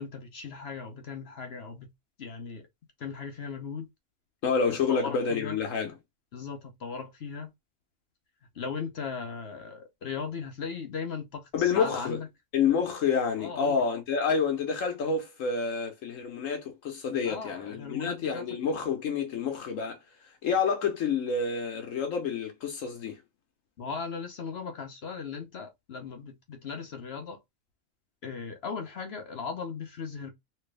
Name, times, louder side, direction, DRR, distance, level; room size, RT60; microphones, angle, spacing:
voice 1, 0.0-1.9 2.2-2.7 3.0-3.9 4.7-5.6 6.3-7.5 8.5-12.3 13.4-13.8 17.2-18.4 23.8-27.4 28.2-30.3, left 5 dB, 55° left, 0.9 m, -38 dB
voice 2, 4.4-5.9 11.5-12.2 12.5-20.0 20.4-23.2, left 6 dB, 75° left, 1.2 m, -28 dB
3.3 x 3.0 x 3.2 m
omnidirectional pair, 1.4 m